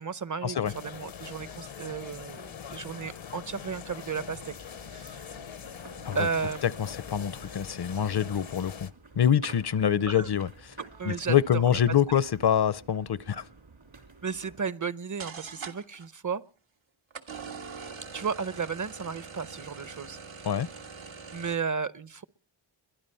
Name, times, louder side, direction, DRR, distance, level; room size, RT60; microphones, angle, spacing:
voice 1, 0.0-4.5 4.9-5.3 6.1-6.7 10.1-10.3 11.0-12.2 14.2-16.4 18.1-20.2 21.3-22.2, right 5 dB, 40° right, 0.7 m, -34 dB
sound 1, 0.6-8.9, left 8 dB, 80° left, 1.0 m, -43 dB
sound 2, 4.3-14.6, right 3 dB, 70° right, 2.9 m, -51 dB
voice 2, 7.1-8.9 9.2-10.5 11.0-13.5 20.5-20.7, left 9 dB, 55° left, 0.7 m, -25 dB
sound 3, 15.2-16.1 17.1-21.6, right 5 dB, 90° right, 1.6 m, -43 dB
22.0 x 11.5 x 5.5 m
wide cardioid pair, 60°, 46 cm